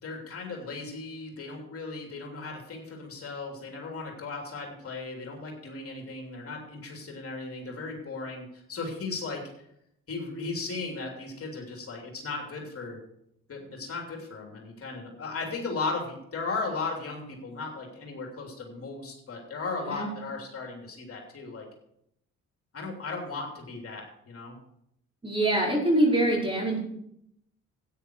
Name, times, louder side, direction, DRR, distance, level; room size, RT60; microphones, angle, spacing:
voice 1, 0.0-9.4 10.1-13.0 13.5-21.7 22.7-24.6, left 3 dB, 50° left, 1 dB, 3.1 m, -36 dB
voice 2, 25.2-26.8, right 1 dB, 15° right, -2 dB, 4.7 m, -24 dB
13.0 x 9.3 x 4.6 m, 0.75 s
cardioid pair, 90°, 30 cm